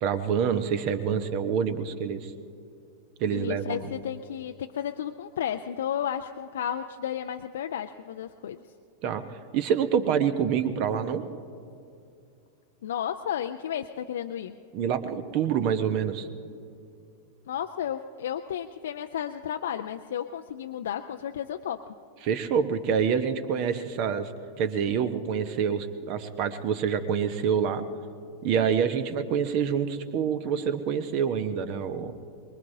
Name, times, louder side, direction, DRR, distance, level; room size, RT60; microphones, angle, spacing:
voice 1, 0.0-2.3 3.2-3.9 9.0-11.2 14.7-16.3 22.2-24.3 24.6-27.8 28.4-32.1, right 7 dB, 45° right, 11 dB, 1.0 m, -27 dB
voice 2, 3.3-8.7 12.8-14.5 17.5-21.9, left 9 dB, 60° left, 6 dB, 0.4 m, -33 dB
23.5 x 22.0 x 2.8 m, 2.5 s
figure-of-eight pair, 90°, 0 cm